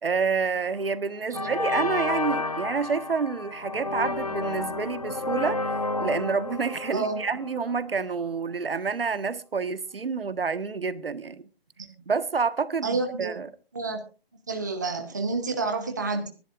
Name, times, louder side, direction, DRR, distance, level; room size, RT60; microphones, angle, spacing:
voice 1, 0.0-5.7 6.0-11.4 12.1-13.5, right 5 dB, 65° right, 1.4 m, -28 dB
sound 1, 0.6-0.9 1.3-8.1, left 3 dB, 40° left, 0.6 m, -31 dB
voice 2, 12.8-13.3 13.7-14.0 14.5-16.3, right 3 dB, 20° right, 0.9 m, -29 dB
23.5 x 11.5 x 2.5 m
hypercardioid pair, 180°, 31 cm